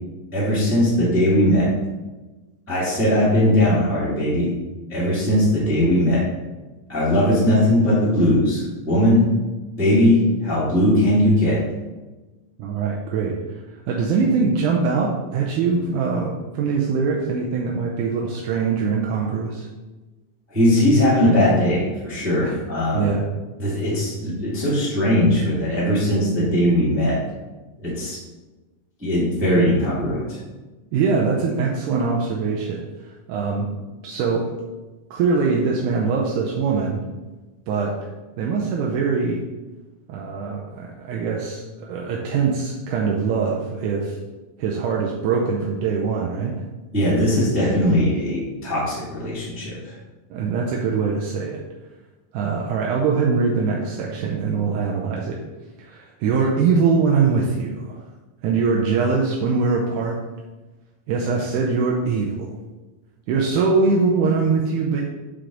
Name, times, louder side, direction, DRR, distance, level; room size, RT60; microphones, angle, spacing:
voice 1, 0.3-1.7 2.7-4.5 4.9-6.2 6.9-9.2 9.8-11.6 20.5-23.1 23.6-27.2 27.8-28.2 29.0-30.4 46.9-49.9, left 1 dB, 10° right, -8 dB, 0.9 m, -19 dB
voice 2, 12.6-13.4 13.9-19.7 22.4-22.5 22.9-23.2 30.9-33.7 34.0-34.5 35.1-37.0 37.7-38.1 38.4-39.4 40.1-44.2 44.6-46.5 50.3-51.6 52.3-55.4 55.8-57.9 58.4-60.2 61.1-62.5 63.3-65.0, right 5 dB, 80° right, -2 dB, 1.9 m, -22 dB
5.9 x 5.0 x 3.8 m, 1.2 s
omnidirectional pair, 4.0 m